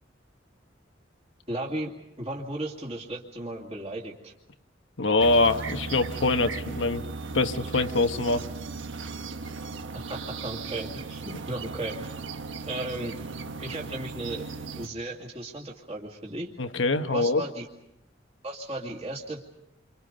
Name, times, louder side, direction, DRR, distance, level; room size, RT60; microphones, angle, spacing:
voice 1, 1.5-1.9 2.2-4.3 9.9-12.1 12.6-13.2 13.6-14.5 14.8-16.5 17.1-17.7 18.4-19.4, right 1 dB, 35° right, -1 dB, 2.4 m, -35 dB
voice 2, 5.0-7.0 7.3-8.4 16.6-17.4, left 2 dB, 85° left, 8 dB, 1.3 m, -24 dB
sound 1, 5.2-14.9, right 4 dB, 90° right, 1.3 m, -37 dB
29.0 x 26.0 x 5.3 m, 0.82 s
head